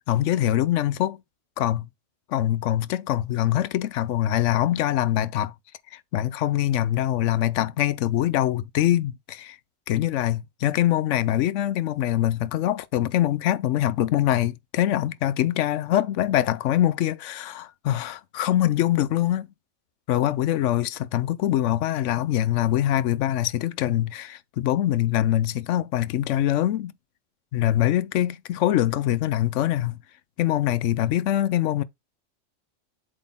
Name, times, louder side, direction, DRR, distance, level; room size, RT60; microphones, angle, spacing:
voice 1, 0.1-1.2 1.6-1.9 2.3-5.5 5.9-9.6 9.9-19.5 20.1-26.9 27.5-30.0 30.4-31.8, left 13 dB, 80° left, 0.9 m, -24 dB
7.8 x 4.1 x 3.5 m
omnidirectional pair, 1.3 m